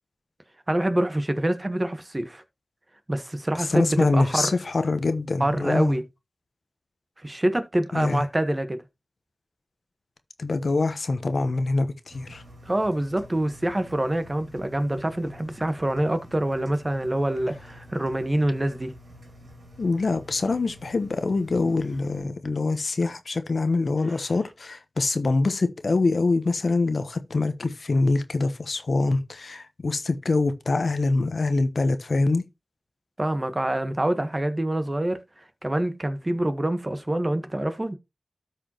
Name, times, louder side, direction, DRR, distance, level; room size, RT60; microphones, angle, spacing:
voice 1, 0.7-2.4 3.1-4.5 5.4-6.0 7.2-8.8 12.7-18.9 33.2-35.2 35.6-38.0, right 1 dB, 30° right, 1.3 m, -26 dB
voice 2, 3.6-6.0 7.9-8.2 10.4-12.4 19.8-32.4, left 3 dB, 75° left, 1.0 m, -24 dB
Engine, 12.1-22.2, equal, 80° right, 2.6 m, -48 dB
13.0 x 4.8 x 2.9 m
wide cardioid pair, 50°, 0 cm